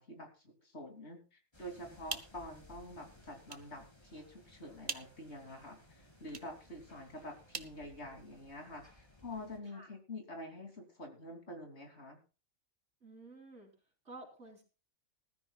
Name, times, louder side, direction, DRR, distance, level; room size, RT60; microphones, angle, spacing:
voice 1, 0.0-12.2, left 1 dB, 55° left, 3 dB, 3.3 m, -47 dB
A very windy night, 1.5-9.6, left 2 dB, 20° left, 2.9 m, -61 dB
sound 1, 1.8-8.6, right 5 dB, 40° right, 1.2 m, -49 dB
voice 2, 13.0-13.7 14.0-14.6, right 2 dB, 60° right, 0 dB, 4.5 m, -52 dB
20.0 x 13.5 x 2.4 m, 0.33 s
omnidirectional pair, 1.4 m